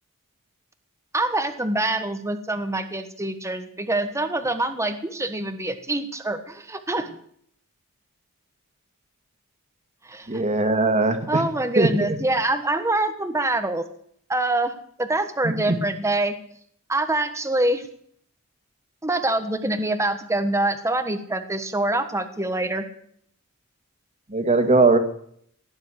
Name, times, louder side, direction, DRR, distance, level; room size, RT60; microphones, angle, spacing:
voice 1, 1.1-7.2 10.1-10.4 11.3-13.9 14.3-16.3 16.9-17.8 19.0-22.8, right 2 dB, 15° right, 8 dB, 1.3 m, -25 dB
voice 2, 10.3-11.4 11.8-11.9 15.4-15.8 24.3-25.0, right 3 dB, 30° right, 6 dB, 2.1 m, -20 dB
18.0 x 10.5 x 6.5 m, 0.64 s
head